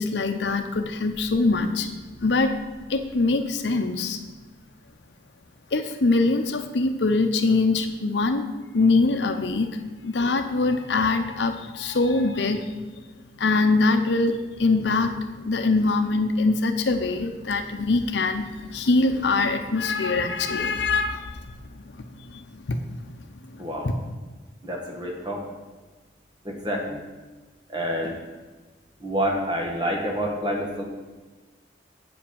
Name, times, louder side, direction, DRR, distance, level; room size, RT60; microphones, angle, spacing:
voice 1, 0.0-1.9 2.2-2.6 2.9-4.2 5.7-9.8 10.0-12.8 13.4-21.5 21.8-22.8 23.6-23.9, left 3 dB, 75° left, 7 dB, 0.7 m, -23 dB
voice 2, 24.6-25.4 26.4-27.0 27.7-28.2 29.0-30.8, equal, 25° right, 0 dB, 1.5 m, -28 dB
8.1 x 5.2 x 7.0 m, 1.3 s
head